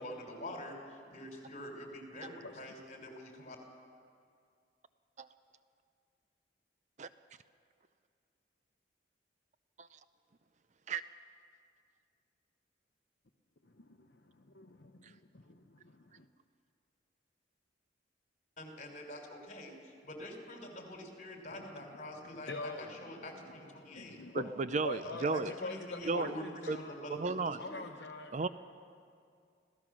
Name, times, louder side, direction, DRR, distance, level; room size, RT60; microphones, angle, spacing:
voice 1, 0.0-3.6 18.6-24.2 25.3-26.4 26.8-27.8, left 1 dB, 40° left, 3 dB, 3.6 m, -46 dB
voice 2, 13.8-16.3 21.5-21.7 22.0-24.5 24.8-27.0 27.6-28.5, left 2 dB, 60° left, 4 dB, 0.8 m, -45 dB
voice 3, 24.3-25.5 26.1-26.3 26.7-26.8 27.2-27.6 28.3-28.5, right 4 dB, 40° right, 13 dB, 0.5 m, -34 dB
26.0 x 16.0 x 6.2 m, 2.3 s
head